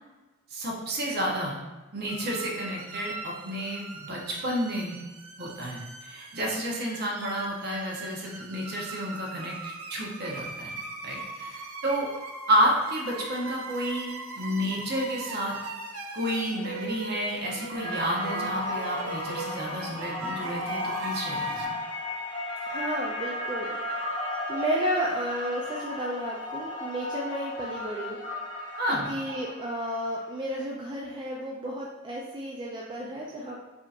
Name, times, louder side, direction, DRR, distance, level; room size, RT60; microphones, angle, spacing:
voice 1, 0.5-1.6 1.9-5.0 5.4-10.7 11.0-12.1 12.5-15.6 16.1-21.7 28.8-29.1, equal, 50° right, -2 dB, 0.9 m, -30 dB
sound 1, 2.1-21.7, right 3 dB, 90° right, 0.5 m, -40 dB
sound 2, 17.7-30.0, left 1 dB, 25° left, 0.8 m, -34 dB
voice 2, 22.7-24.2 24.5-28.2 28.9-33.6, right 1 dB, 20° right, -4 dB, 0.4 m, -32 dB
5.1 x 2.8 x 2.4 m, 1.2 s
head